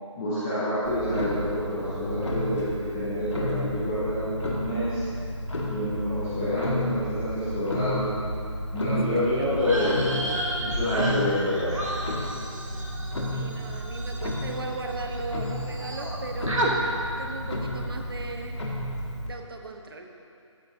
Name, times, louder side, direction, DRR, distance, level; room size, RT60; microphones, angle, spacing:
voice 1, 0.2-5.0 5.7-8.2 8.7-10.3 10.6-11.8, equal, 5° left, -12 dB, 0.4 m, -28 dB
Clock, 0.8-19.3, left 1 dB, 65° left, 1.8 m, -32 dB
voice 2, 9.0-9.3 13.3-16.8 17.2-18.6 19.2-20.1, right 3 dB, 50° right, 3 dB, 1.0 m, -37 dB
sound 1, 9.6-15.2 15.4-16.2 16.5-16.7, right 1 dB, 90° right, 1.9 m, -33 dB
14.0 x 8.4 x 2.7 m, 2.5 s
figure-of-eight pair, 160°, 16 cm